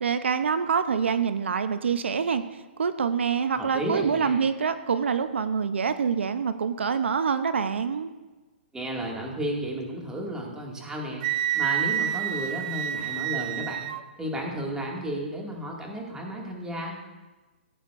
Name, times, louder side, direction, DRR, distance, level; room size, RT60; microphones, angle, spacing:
voice 1, 0.0-2.4 2.8-8.1, right 6 dB, 85° right, 11 dB, 0.6 m, -26 dB
voice 2, 3.5-4.3 8.7-11.2 11.5-13.9 14.2-17.0, right 1 dB, 10° right, -2 dB, 2.1 m, -33 dB
Wind instrument woodwind instrument, 11.2-14.0, right 11 dB, 45° right, 0.6 m, -28 dB
16.5 x 9.0 x 2.5 m, 1.2 s
hypercardioid pair, 140°, 6 cm